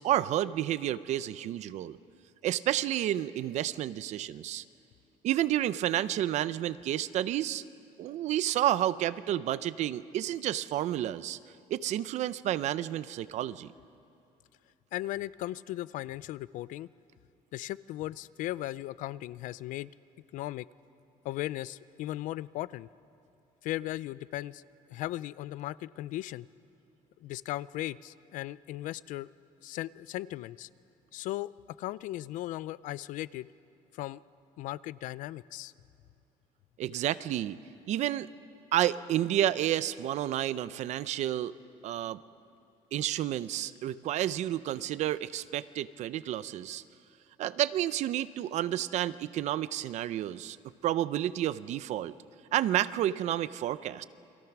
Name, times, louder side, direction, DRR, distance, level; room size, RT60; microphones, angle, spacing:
voice 1, 0.0-2.0 2.4-4.6 5.2-7.6 8.0-11.4 11.7-13.7 36.8-37.6 37.9-38.3 38.7-41.5 41.8-42.2 42.9-46.8 47.4-50.6 50.8-52.1 52.5-54.0, right 12 dB, 60° right, 16 dB, 0.6 m, -30 dB
voice 2, 14.9-16.9 17.5-19.9 20.3-20.7 21.2-22.9 23.6-24.6 24.9-26.5 27.2-29.3 29.6-30.7 31.1-33.5 33.9-34.2 34.6-35.7, left 15 dB, 70° left, 19 dB, 0.5 m, -37 dB
29.0 x 23.0 x 6.0 m, 2.6 s
cardioid pair, 165°, 14 cm